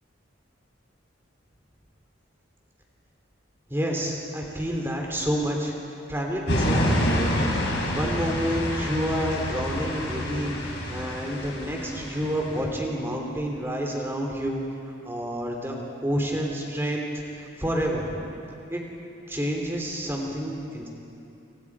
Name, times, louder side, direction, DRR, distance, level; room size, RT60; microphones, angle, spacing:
voice 1, 3.7-5.7 6.1-7.5 7.9-10.6 10.9-14.6 15.0-15.7 16.0-17.1 17.3-18.1 18.7-18.8 19.3-20.9, equal, 10° right, 0 dB, 3.3 m, -29 dB
sound 1, 6.5-12.6, equal, 60° left, 5.6 m, -27 dB
28.0 x 26.5 x 4.9 m, 2.8 s
head